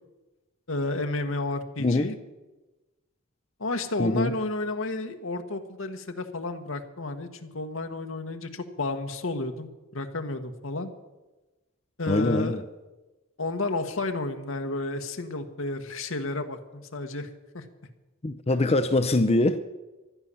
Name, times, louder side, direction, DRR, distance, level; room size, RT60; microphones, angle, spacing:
voice 1, 0.7-2.1 3.6-10.9 12.0-12.6 13.4-17.3 17.5-17.6, left 2 dB, 70° left, 7 dB, 1.4 m, -31 dB
voice 2, 4.0-4.3 12.1-12.6 18.2-19.6, left 2 dB, 30° left, 10 dB, 0.6 m, -23 dB
15.0 x 11.5 x 7.0 m, 1.1 s
head